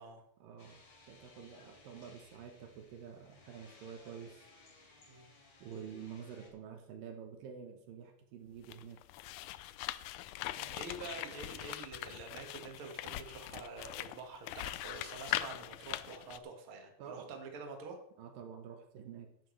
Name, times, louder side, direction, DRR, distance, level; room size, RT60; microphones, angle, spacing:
voice 1, 0.4-4.5 5.6-9.0 17.0-17.3 18.2-19.3, right 7 dB, 75° right, 5 dB, 2.7 m, -49 dB
sound 1, 0.6-6.5, left 3 dB, 50° left, 4.1 m, -61 dB
sound 2, 8.6-16.4, left 15 dB, 85° left, 1.8 m, -41 dB
voice 2, 10.6-18.0, right 4 dB, 45° right, 3 dB, 2.2 m, -47 dB
15.0 x 11.5 x 3.3 m, 0.71 s
omnidirectional pair, 4.1 m